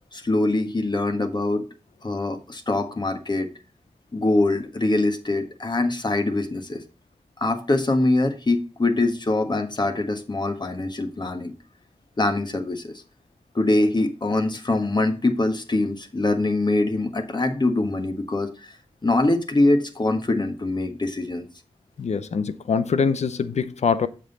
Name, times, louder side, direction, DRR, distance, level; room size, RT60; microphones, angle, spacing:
voice 1, 0.1-1.6 2.0-3.5 4.1-6.8 7.4-11.5 12.2-12.9 13.5-18.8 19.0-21.5, left 2 dB, 40° left, 1.5 m, -23 dB
voice 2, 22.0-24.1, left 5 dB, 90° left, 0.6 m, -23 dB
7.5 x 5.4 x 4.1 m
cardioid pair, 55°, 11 cm